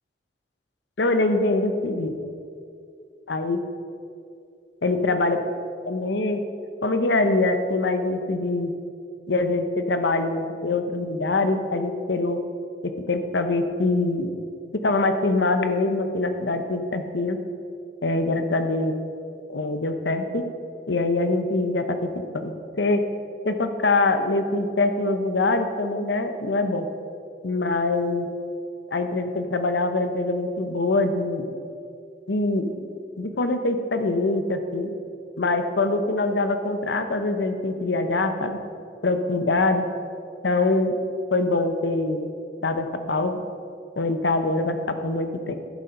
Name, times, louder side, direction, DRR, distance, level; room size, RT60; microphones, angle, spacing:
voice 1, 1.0-2.2 3.3-3.6 4.8-5.4 5.9-6.4 6.8-8.7 9.3-12.4 13.1-14.3 14.7-17.4 18.0-19.0 19.5-20.4 20.9-22.1 22.3-23.0 23.4-26.9 27.4-28.3 28.9-31.4 32.3-32.9 33.2-34.9 35.4-38.6 39.0-39.8 40.4-41.0 41.3-42.3 42.6-43.4 44.0-44.8 45.0-45.6, left 2 dB, 70° left, 8 dB, 0.8 m, -24 dB
11.5 x 6.9 x 5.2 m, 2.5 s
head